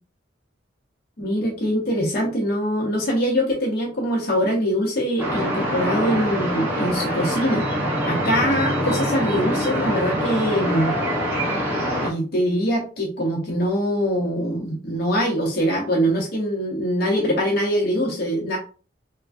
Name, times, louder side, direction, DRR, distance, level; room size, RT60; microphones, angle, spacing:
voice 1, 1.2-7.7 8.1-10.9 12.0-18.6, equal, 55° left, -1 dB, 0.7 m, -23 dB
sound 1, 5.2-12.1, equal, 10° right, 0.9 m, -24 dB
3.2 x 2.1 x 2.5 m, 0.36 s
head